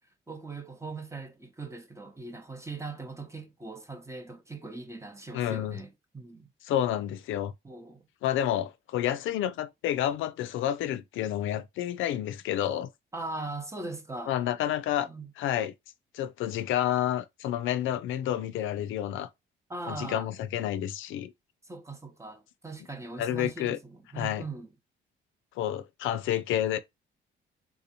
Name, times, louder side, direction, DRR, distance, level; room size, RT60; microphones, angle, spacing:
voice 1, 0.3-6.5 7.6-8.1 13.1-14.3 15.1-15.3 19.7-20.3 21.7-24.7, right 3 dB, 15° right, 0.8 m, -40 dB
voice 2, 5.3-5.8 6.6-7.5 8.2-12.9 14.3-15.1 15.4-15.7 16.1-19.3 19.9-21.3 23.2-23.8 24.1-24.4 25.6-26.8, left 11 dB, 80° left, 0.4 m, -29 dB
3.6 x 2.6 x 2.7 m
cardioid pair, 90°, 20 cm